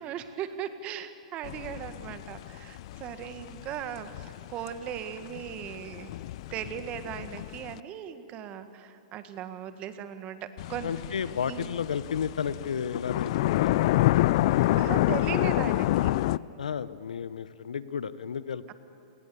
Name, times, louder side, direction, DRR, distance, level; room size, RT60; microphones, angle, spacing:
voice 1, 0.0-6.1 6.5-10.9 11.4-11.6 14.8-16.2 18.7-18.8, right 9 dB, 35° right, 10 dB, 1.6 m, -38 dB
sound 1, 1.4-7.8 10.6-16.4, left 16 dB, 55° left, 0.4 m, -28 dB
voice 2, 10.8-13.7 16.6-18.7, left 7 dB, 90° left, 16 dB, 0.9 m, -32 dB
28.0 x 19.5 x 7.0 m, 2.8 s
hypercardioid pair, 135°, 4 cm